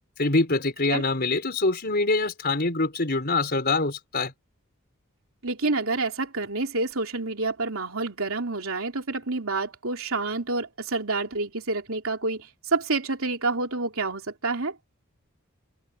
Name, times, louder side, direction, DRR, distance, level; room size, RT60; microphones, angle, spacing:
voice 1, 0.2-4.3, left 3 dB, 45° left, 4.2 m, -24 dB
voice 2, 5.4-14.8, right 3 dB, 70° right, 3.4 m, -28 dB
head